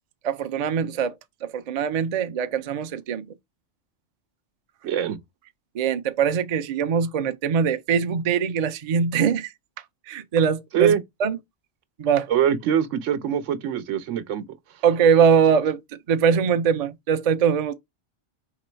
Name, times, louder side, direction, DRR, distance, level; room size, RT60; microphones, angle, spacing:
voice 1, 0.2-1.1 1.4-3.3 5.7-9.5 10.1-10.9 11.2-11.4 12.0-12.3 14.8-17.7, right 7 dB, 55° right, 0.4 m, -22 dB
voice 2, 4.8-5.2 10.7-11.0 12.3-14.4, right 9 dB, 90° right, 1.0 m, -23 dB
4.0 x 3.0 x 4.4 m
omnidirectional pair, 1.2 m